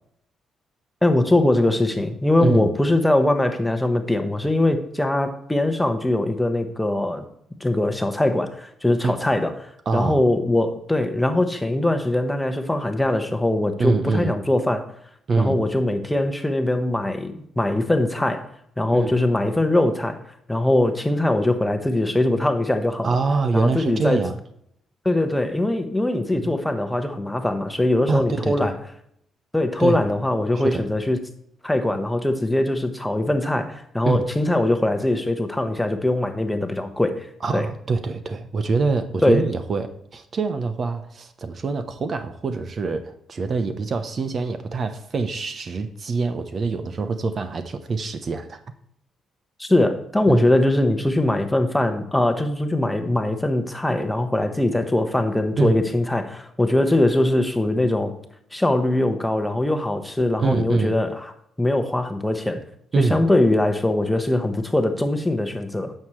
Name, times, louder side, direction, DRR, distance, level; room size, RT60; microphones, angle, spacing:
voice 1, 1.0-7.2 7.6-14.8 15.4-18.4 18.8-20.2 20.5-23.2 23.5-24.2 25.0-28.8 29.5-31.2 31.6-37.3 37.5-37.7 39.2-39.5 49.6-58.1 58.5-61.3 61.6-62.6 63.0-65.9, left 1 dB, 10° left, 7 dB, 1.1 m, -21 dB
voice 2, 9.9-10.2 13.8-14.3 15.3-15.6 18.9-19.2 23.0-24.4 26.4-26.6 28.1-28.7 29.8-30.0 30.6-30.8 34.0-34.2 37.4-48.6 50.3-50.4 55.6-55.8 60.2-61.0 62.9-63.2, right 4 dB, 45° right, 10 dB, 0.8 m, -25 dB
9.3 x 6.7 x 3.1 m, 0.73 s
cardioid pair, 90°, 0 cm